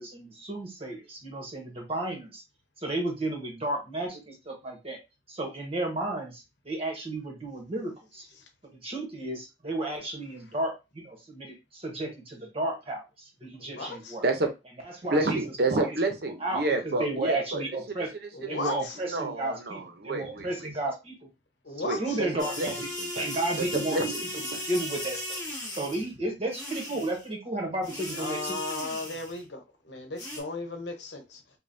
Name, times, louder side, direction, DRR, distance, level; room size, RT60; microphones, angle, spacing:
voice 1, 0.0-2.4 2.8-5.0 5.3-8.3 8.8-14.2 15.0-15.4 15.7-15.9 16.4-18.1 18.5-21.2 22.0-22.9 23.1-24.1 24.5-25.4 25.8-28.6, right 2 dB, 35° right, 1.2 m, -33 dB
voice 2, 13.6-14.1 18.3-19.0 20.4-20.5 21.6-22.2 28.2-31.4, left 2 dB, 75° left, 0.9 m, -36 dB
voice 3, 15.1-17.6 19.1-20.5 21.8-22.7 23.0-23.3 23.6-24.6, right 2 dB, 60° right, 0.7 m, -29 dB
sound 1, 22.4-26.1 26.5-27.2 27.8-29.4 30.2-30.4, left 1 dB, 20° left, 1.6 m, -36 dB
5.2 x 2.2 x 2.6 m
head